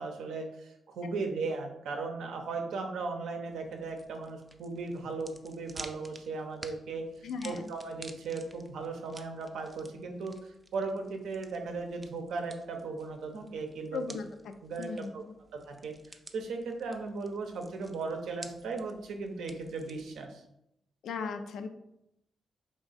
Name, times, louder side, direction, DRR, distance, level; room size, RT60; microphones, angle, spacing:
voice 1, 0.0-7.1 7.4-14.1 14.6-15.2 15.5-20.4, right 4 dB, 75° right, 4 dB, 0.6 m, -37 dB
sound 1, 3.5-20.2, right 2 dB, 25° right, 0.5 m, -52 dB
voice 2, 7.2-7.7 13.9-14.3 14.8-15.3 21.0-21.7, left 5 dB, 75° left, 8 dB, 0.4 m, -37 dB
3.5 x 2.5 x 4.0 m, 0.82 s
supercardioid pair, 50°, 0 cm